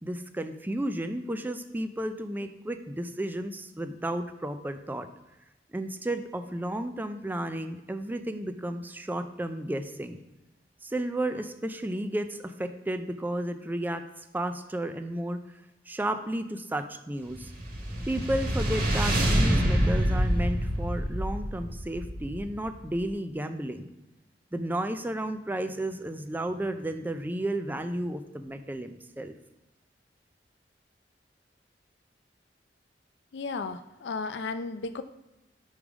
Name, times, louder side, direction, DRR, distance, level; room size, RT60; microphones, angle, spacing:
voice 1, 0.0-5.1 5.7-10.2 10.8-14.0 14.3-15.4 15.9-17.5 18.1-23.9 24.5-29.3, right 1 dB, 10° right, 9 dB, 0.4 m, -33 dB
sound 1, 17.3-22.8, equal, 55° right, 1.4 m, -27 dB
voice 2, 33.3-35.0, left 4 dB, 80° left, 10 dB, 0.4 m, -34 dB
5.3 x 4.8 x 4.9 m, 0.98 s
head